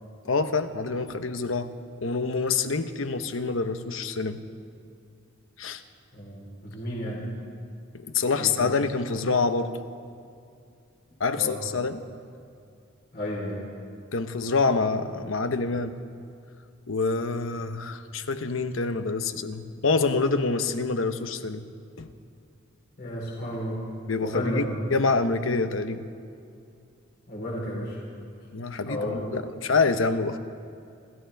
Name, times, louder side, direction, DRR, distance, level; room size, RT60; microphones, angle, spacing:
voice 1, 0.2-1.7 2.0-4.4 5.6-5.8 8.0-9.7 11.2-12.1 14.1-15.9 16.9-21.6 22.0-22.1 24.1-24.6 24.9-26.0 28.5-30.4, left 4 dB, 80° left, 9 dB, 0.9 m, -26 dB
voice 2, 6.1-7.2 8.3-8.7 11.3-11.6 13.1-13.6 23.0-23.8 24.2-24.7 27.3-28.0 28.9-29.3, left 1 dB, 55° left, -4 dB, 3.9 m, -32 dB
29.5 x 14.0 x 3.5 m, 2.4 s
head